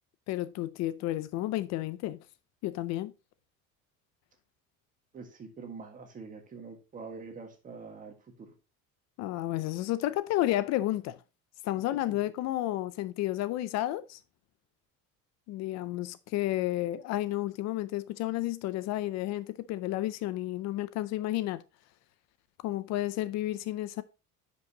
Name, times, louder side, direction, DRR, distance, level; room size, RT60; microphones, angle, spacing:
voice 1, 0.3-2.2 2.6-3.1 9.2-11.2 11.6-14.2 15.5-21.6 22.6-24.0, left 15 dB, 60° left, 0.5 m, -31 dB
voice 2, 5.1-8.5 11.7-11.8 12.1-12.2, right 4 dB, 25° right, 1.6 m, -45 dB
10.5 x 5.3 x 2.8 m
cardioid pair, 160°, 30 cm